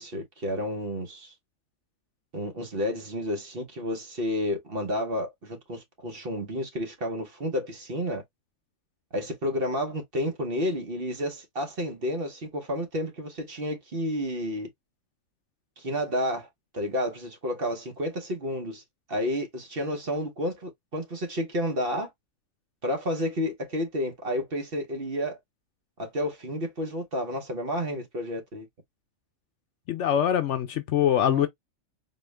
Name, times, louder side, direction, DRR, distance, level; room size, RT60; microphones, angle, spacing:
voice 1, 0.0-1.3 2.3-8.2 9.1-14.7 15.8-16.5 16.7-18.8 19.1-22.1 22.8-25.4 26.0-28.7 31.2-31.5, equal, 45° right, 1.2 m, -31 dB
voice 2, 29.9-31.5, left 10 dB, 65° left, 0.8 m, -23 dB
4.3 x 2.4 x 3.2 m
omnidirectional pair, 1.4 m